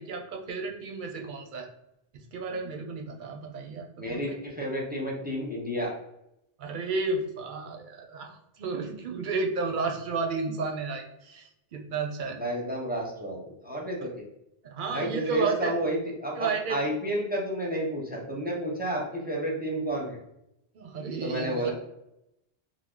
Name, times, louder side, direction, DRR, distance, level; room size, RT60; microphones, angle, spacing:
voice 1, 0.0-1.7 2.1-4.2 6.6-12.4 14.6-15.7 16.4-16.8 20.7-21.7, right 4 dB, 60° right, 2 dB, 0.6 m, -32 dB
voice 2, 4.0-6.0 12.3-14.1 14.9-20.2 21.2-21.7, right 1 dB, 10° right, -3 dB, 0.5 m, -31 dB
3.1 x 2.0 x 3.6 m, 0.85 s
omnidirectional pair, 1.2 m